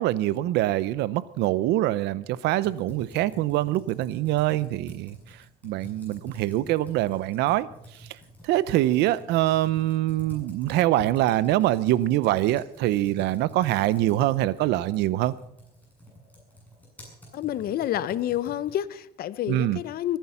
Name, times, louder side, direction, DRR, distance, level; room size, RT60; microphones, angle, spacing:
voice 1, 0.0-8.2 8.4-15.3 19.5-19.8, right 15 dB, 85° right, 18 dB, 0.7 m, -24 dB
Computer keyboard, 2.5-18.9, equal, 10° left, 7.8 m, -48 dB
voice 2, 17.3-20.2, left 12 dB, 65° left, 17 dB, 0.8 m, -29 dB
21.5 x 10.5 x 5.7 m, 0.77 s
cardioid pair, 110°, 17 cm